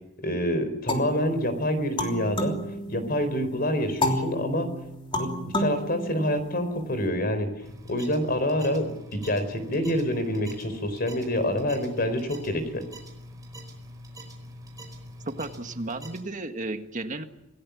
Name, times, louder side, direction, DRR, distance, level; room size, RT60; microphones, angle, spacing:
voice 1, 0.2-2.6 2.9-4.7 5.1-7.5 7.9-12.8, equal, 45° left, 10 dB, 4.4 m, -27 dB
sound 1, 0.9-3.4 4.0-6.8, left 1 dB, 25° left, 3.2 m, -31 dB
sound 2, 7.6-16.2, equal, 20° right, 5.0 m, -44 dB
voice 2, 15.2-17.2, right 2 dB, 40° right, 7 dB, 1.7 m, -33 dB
27.5 x 17.5 x 8.4 m, 0.86 s
head